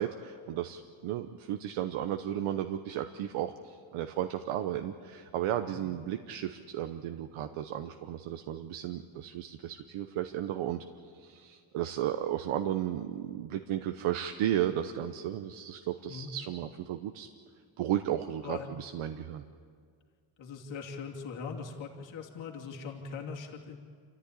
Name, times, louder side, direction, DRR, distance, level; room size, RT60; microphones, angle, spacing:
voice 1, 0.0-10.8 11.1-17.3 17.8-19.4, right 11 dB, 85° right, 7 dB, 1.0 m, -34 dB
voice 2, 20.4-23.8, left 5 dB, 65° left, 0 dB, 2.8 m, -41 dB
28.5 x 14.5 x 9.9 m, 2.1 s
cardioid pair, 165°, 48 cm